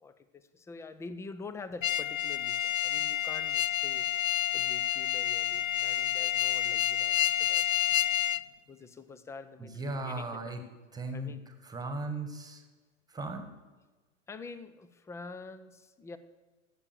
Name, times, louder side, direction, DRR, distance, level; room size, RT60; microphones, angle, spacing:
voice 1, 0.0-7.7 8.1-8.4 8.7-10.6 11.1-11.4 14.3-16.2, left 4 dB, 5° left, 13 dB, 0.5 m, -46 dB
sound 1, 1.8-8.4, left 11 dB, 80° left, 0.5 m, -29 dB
voice 2, 9.6-10.6 10.9-12.6 13.1-13.5, right 2 dB, 10° right, 7 dB, 1.5 m, -37 dB
14.0 x 7.4 x 6.8 m, 1.3 s
figure-of-eight pair, 95°, 40 cm